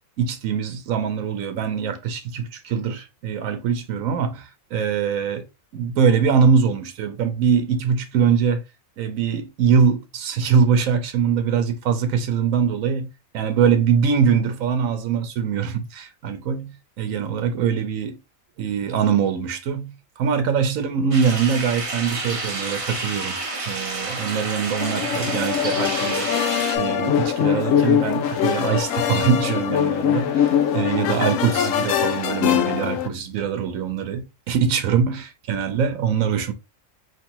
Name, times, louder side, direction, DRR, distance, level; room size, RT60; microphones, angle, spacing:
voice 1, 0.2-5.5 5.7-8.6 9.0-13.1 13.3-18.2 18.6-23.4 23.7-26.3 26.8-36.5, right 6 dB, 80° right, 1.2 m, -23 dB
sound 1, 21.1-26.8, right 3 dB, 25° right, 0.9 m, -29 dB
sound 2, 24.8-33.1, left 9 dB, 75° left, 1.0 m, -22 dB
4.7 x 3.3 x 2.9 m
omnidirectional pair, 1.4 m